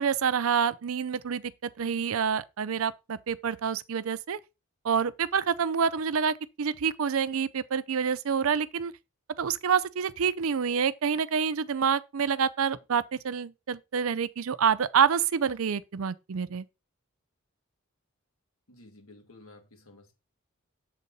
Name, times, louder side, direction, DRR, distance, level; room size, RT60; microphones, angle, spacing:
voice 1, 0.0-4.4 4.8-8.9 9.4-16.6, right 7 dB, 75° right, 0.5 m, -27 dB
voice 2, 18.7-20.1, left 2 dB, 80° left, 2.2 m, -53 dB
7.3 x 4.1 x 5.3 m
head